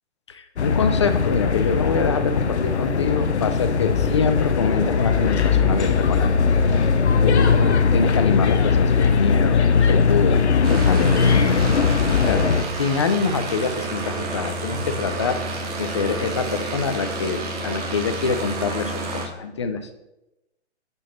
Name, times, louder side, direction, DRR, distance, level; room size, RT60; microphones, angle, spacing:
voice 1, 0.3-6.3 7.2-11.7 12.2-12.4 12.8-15.4 15.8-19.9, left 5 dB, 25° left, 9 dB, 0.4 m, -25 dB
sound 1, 0.6-12.6, left 5 dB, 70° left, 0.6 m, -19 dB
sound 2, 10.6-19.3, right 2 dB, 35° right, 1.1 m, -30 dB
5.4 x 5.3 x 4.2 m, 0.94 s
figure-of-eight pair, 120°, 34 cm